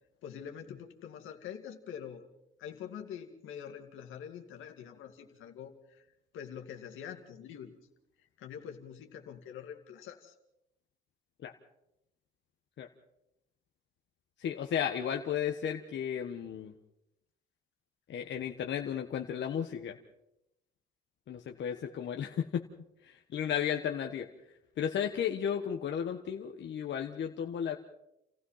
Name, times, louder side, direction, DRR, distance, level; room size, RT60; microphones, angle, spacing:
voice 1, 0.2-2.3 2.6-6.0 6.3-7.7 8.4-10.3, left 8 dB, 85° left, 4 dB, 2.3 m, -45 dB
voice 2, 14.4-16.7 18.1-20.0 21.3-22.6 23.0-24.3 24.8-27.8, left 8 dB, 65° left, 3 dB, 1.3 m, -34 dB
29.0 x 15.5 x 5.8 m, 0.85 s
cardioid pair, 90°, 20 cm